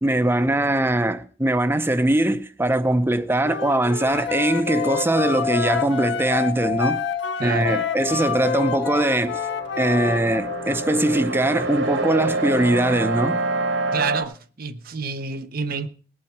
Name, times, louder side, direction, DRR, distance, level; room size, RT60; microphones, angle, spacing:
voice 1, 0.0-7.0 7.4-9.4 9.8-13.4, right 1 dB, 10° right, 0.6 m, -21 dB
Wind instrument woodwind instrument, 3.4-10.2, left 6 dB, 65° left, 0.6 m, -29 dB
sound 1, 4.1-11.2, left 6 dB, 30° left, 0.7 m, -31 dB
voice 2, 7.4-7.8 13.9-15.9, right 4 dB, 50° right, 0.7 m, -28 dB
sound 2, 8.5-14.2, right 2 dB, 85° right, 2.3 m, -27 dB
19.0 x 8.8 x 4.6 m
head